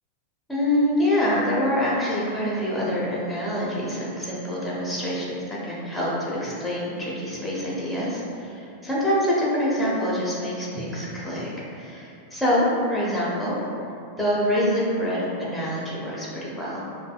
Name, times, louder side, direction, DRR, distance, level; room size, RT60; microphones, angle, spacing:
voice 1, 0.5-11.5 11.7-13.6 14.2-16.8, equal, 5° left, -7 dB, 0.9 m, -25 dB
5.2 x 2.4 x 2.3 m, 2.6 s
figure-of-eight pair, 90°, 0 cm